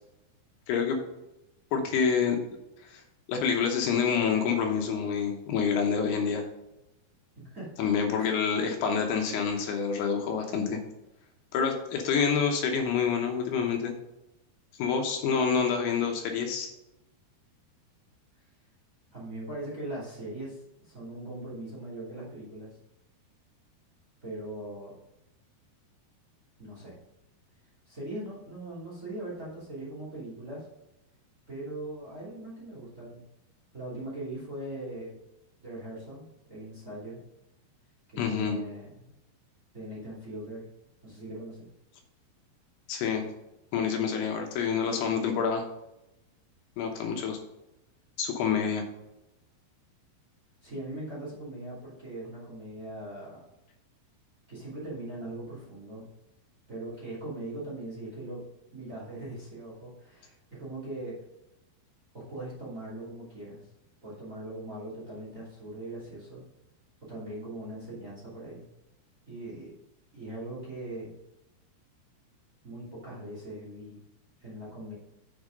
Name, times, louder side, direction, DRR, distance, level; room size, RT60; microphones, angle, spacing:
voice 1, 0.7-1.0 1.7-2.4 2.8-3.0 3.3-6.5 7.8-10.8 11.5-13.9 14.8-16.7 38.2-38.6 42.9-43.2 43.7-45.6 46.8-47.4 48.2-48.8, left 6 dB, 75° left, 3 dB, 2.9 m, -27 dB
voice 2, 7.4-7.7 8.2-8.3 19.1-22.8 24.2-24.9 26.6-26.9 27.9-30.7 31.5-33.2 33.7-35.2 35.6-37.2 38.1-39.1 39.7-40.7 41.0-41.7 50.6-53.4 54.5-56.0 56.7-58.4 58.7-61.2 62.1-63.7 64.0-66.4 67.0-68.7 69.3-69.7 70.1-71.1 72.6-74.0 74.4-74.9, right 1 dB, 20° right, -6 dB, 2.8 m, -40 dB
7.5 x 6.8 x 5.1 m, 0.91 s
omnidirectional pair, 4.8 m